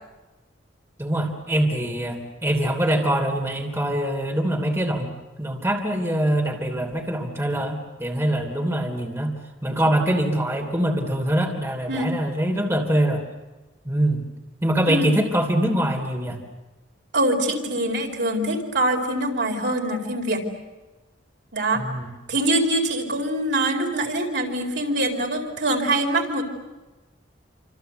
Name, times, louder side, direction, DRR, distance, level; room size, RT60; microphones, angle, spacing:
voice 1, 1.0-5.1 5.4-9.3 9.6-13.2 13.8-14.2 14.6-16.4 21.7-22.1, right 1 dB, 15° right, 2 dB, 3.0 m, -23 dB
voice 2, 17.1-20.5 21.5-21.8 22.3-26.4, right 1 dB, 65° right, 2 dB, 4.5 m, -24 dB
28.0 x 26.5 x 8.0 m, 1.2 s
head